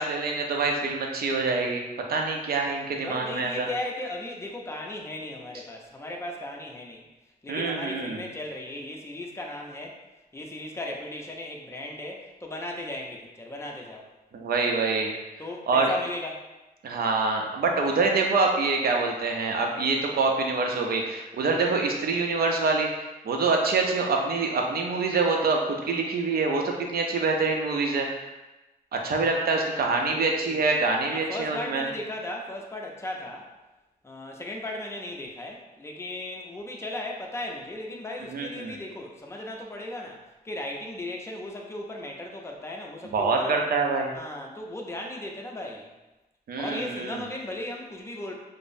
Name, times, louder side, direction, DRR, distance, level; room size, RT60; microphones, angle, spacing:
voice 1, 0.0-1.8 2.1-3.7 7.5-8.2 14.3-15.1 15.7-15.9 16.8-28.1 28.9-31.9 38.3-38.8 43.1-44.1 46.5-47.2, right 3 dB, 75° right, 1 dB, 0.6 m, -25 dB
voice 2, 3.0-7.0 7.4-10.0 10.3-14.1 15.4-16.4 29.2-30.7 31.1-33.5 34.0-43.6 44.1-45.9 46.6-48.3, left 1 dB, 15° left, 0 dB, 0.6 m, -37 dB
5.0 x 2.0 x 2.6 m, 1.0 s
wide cardioid pair, 100°, 16 cm